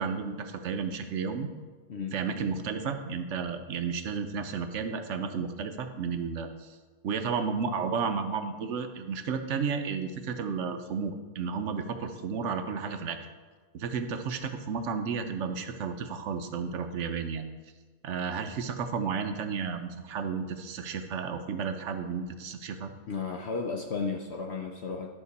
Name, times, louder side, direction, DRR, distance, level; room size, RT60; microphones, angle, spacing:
voice 1, 0.0-1.5 2.1-6.7 7.0-13.2 13.7-17.4 18.0-22.9, right 5 dB, 60° right, 7 dB, 0.9 m, -32 dB
voice 2, 23.1-25.1, left 4 dB, 60° left, 2 dB, 0.7 m, -33 dB
11.0 x 5.9 x 4.1 m, 1.4 s
omnidirectional pair, 1.6 m